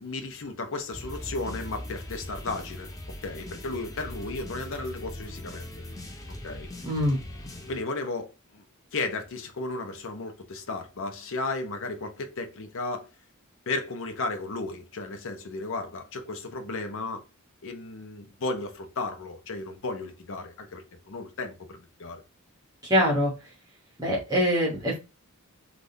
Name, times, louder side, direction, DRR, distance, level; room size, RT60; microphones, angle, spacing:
voice 1, 0.0-2.9 3.2-5.7 6.4-6.7 7.7-8.6 8.9-13.1 13.7-17.2 17.6-22.2, left 3 dB, 60° left, 0.7 m, -34 dB
sound 1, 0.9-7.8, left 1 dB, 15° left, 0.5 m, -40 dB
voice 2, 6.8-7.2 22.8-23.3 24.0-25.0, equal, 15° right, 1.0 m, -24 dB
3.5 x 2.5 x 2.6 m
head